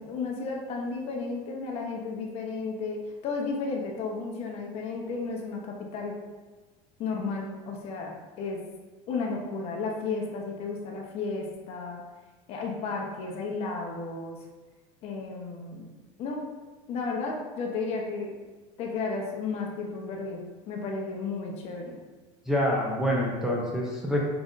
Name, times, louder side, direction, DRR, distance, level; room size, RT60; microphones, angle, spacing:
voice 1, 0.0-6.2 7.0-8.6 9.1-12.0 12.5-14.4 15.0-15.9 16.2-16.5 16.9-18.3 18.8-22.0, left 4 dB, 40° left, 0 dB, 0.9 m, -33 dB
voice 2, 22.5-24.2, equal, 5° right, -4 dB, 0.6 m, -26 dB
5.4 x 3.9 x 2.5 m, 1.3 s
supercardioid pair, 150°, 15 cm